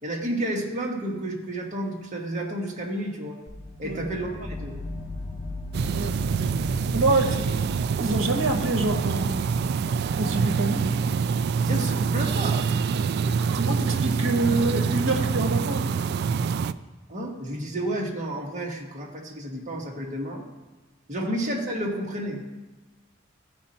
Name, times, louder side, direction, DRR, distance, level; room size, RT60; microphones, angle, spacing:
voice 1, 0.0-3.4 3.8-4.8 11.6-12.6 17.1-20.5 21.1-22.4, right 1 dB, 40° right, -1 dB, 1.6 m, -31 dB
sound 1, 3.5-13.3, left 2 dB, 10° right, 3.0 m, -39 dB
sound 2, 5.7-16.7, right 5 dB, 55° right, 0.3 m, -25 dB
voice 2, 5.9-6.5 6.9-7.7 8.0-9.6 10.2-10.8 13.2-15.9 21.2-21.3, right 2 dB, 75° right, 4 dB, 1.2 m, -27 dB
15.0 x 5.3 x 4.3 m, 1.2 s
head